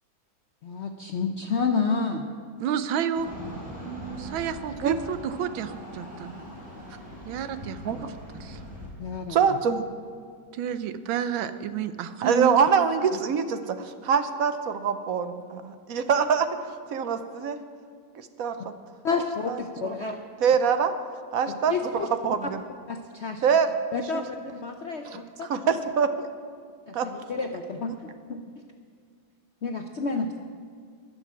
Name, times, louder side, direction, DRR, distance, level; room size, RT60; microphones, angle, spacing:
voice 1, 0.6-2.3 9.0-9.4 19.0-20.2 21.7-22.1 22.9-23.4 23.9-25.5 26.9-28.4 29.6-30.4, left 4 dB, 80° left, 4 dB, 0.6 m, -30 dB
voice 2, 2.6-3.3 4.1-6.3 7.2-8.0 8.4-8.6 10.5-12.7, right 8 dB, 85° right, 11 dB, 1.5 m, -30 dB
sound 1, 3.2-8.9, right 1 dB, 5° right, 4.4 m, -40 dB
voice 3, 9.3-9.8 12.2-17.6 18.1-18.7 19.5-20.9 21.3-22.6 23.4-23.7 24.1-24.2 25.0-26.3 26.9-27.1, right 6 dB, 65° right, 9 dB, 0.9 m, -25 dB
13.5 x 6.8 x 9.4 m, 2.1 s
omnidirectional pair, 2.1 m